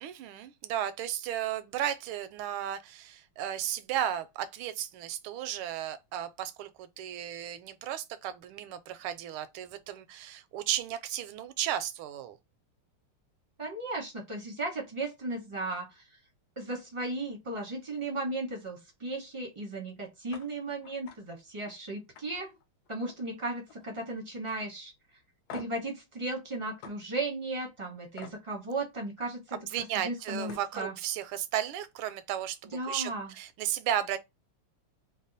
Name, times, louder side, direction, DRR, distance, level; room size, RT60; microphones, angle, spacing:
voice 1, 0.0-12.4 29.5-34.2, right 11 dB, 85° right, 1.4 m, -34 dB
voice 2, 13.6-16.1 16.6-22.5 22.9-24.9 25.5-30.9 32.7-33.3, right 2 dB, 25° right, 0.6 m, -36 dB
sound 1, 20.3-20.5 20.8-21.2 21.6-21.7 22.2-23.3 23.6-24.0 24.5-24.6 25.5-25.9 26.8-27.0 28.2-28.4 30.0-30.1 30.4-30.7, left 6 dB, 70° left, 0.9 m, -47 dB
3.5 x 2.1 x 4.0 m
omnidirectional pair, 2.3 m